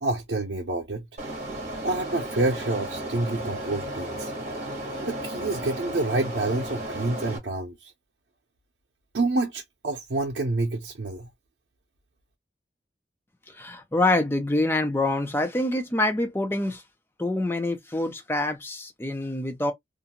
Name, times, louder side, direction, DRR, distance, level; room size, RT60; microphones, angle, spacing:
voice 1, 0.0-1.1 1.8-4.3 5.0-7.9 9.1-11.3, right 2 dB, 90° right, 0.6 m, -28 dB
sound 1, 1.2-7.4, right 1 dB, 40° right, 1.1 m, -34 dB
voice 2, 13.5-16.8 17.2-19.7, left 2 dB, 15° left, 0.5 m, -26 dB
2.5 x 2.3 x 2.8 m
head